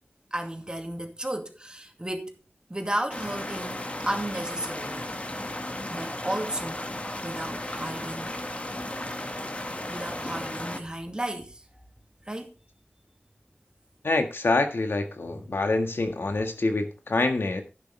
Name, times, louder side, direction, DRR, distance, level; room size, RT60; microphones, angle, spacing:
voice 1, 0.3-2.4 2.7-5.0 5.9-6.8 7.2-8.3 9.9-11.6 12.3-12.5 15.3-15.6, right 1 dB, 25° right, 2.3 m, -33 dB
sound 1, 3.1-10.8, left 1 dB, 35° left, 1.9 m, -35 dB
voice 2, 14.0-17.6, left 2 dB, 90° left, 1.7 m, -26 dB
11.5 x 9.8 x 3.4 m
wide cardioid pair, 55°, 4 cm